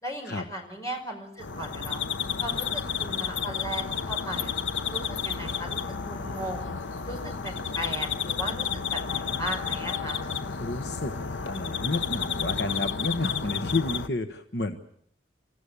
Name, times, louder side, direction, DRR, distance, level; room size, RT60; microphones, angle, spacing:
voice 1, 0.0-2.0 2.4-4.5 4.9-6.7 7.0-8.6 8.9-10.3, equal, 15° left, 1 dB, 4.9 m, -37 dB
sound 1, 1.4-14.1, left 6 dB, 75° left, 0.9 m, -31 dB
voice 2, 10.6-11.1 11.5-14.8, left 2 dB, 60° left, 7 dB, 1.2 m, -30 dB
29.5 x 14.5 x 8.5 m, 0.69 s
head